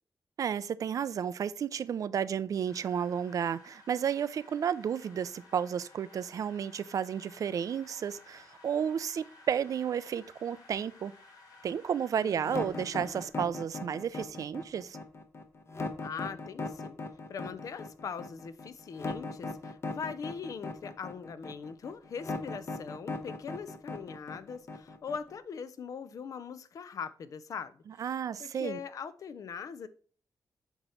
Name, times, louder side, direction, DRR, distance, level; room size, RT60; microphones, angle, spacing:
voice 1, 0.4-11.1 11.6-15.0 28.0-28.8, right 8 dB, 65° right, 0.4 m, -32 dB
sound 1, 2.7-13.3, left 3 dB, 85° left, 2.5 m, -56 dB
voice 2, 12.2-12.7 16.0-17.0 17.3-28.1 28.4-29.9, left 6 dB, 65° left, 0.6 m, -41 dB
sound 2, 12.4-25.4, left 3 dB, 45° left, 1.0 m, -38 dB
8.0 x 3.0 x 5.6 m
wide cardioid pair, 120°, 6 cm